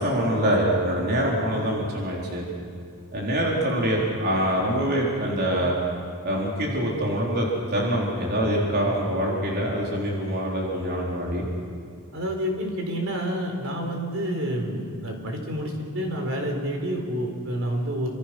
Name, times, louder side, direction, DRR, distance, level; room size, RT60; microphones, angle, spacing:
voice 1, 0.0-2.4 3.1-5.8 6.2-11.5, equal, 50° right, -3 dB, 4.3 m, -25 dB
voice 2, 12.1-18.1, equal, 65° right, 2 dB, 4.4 m, -28 dB
28.5 x 26.0 x 6.3 m, 2.2 s
head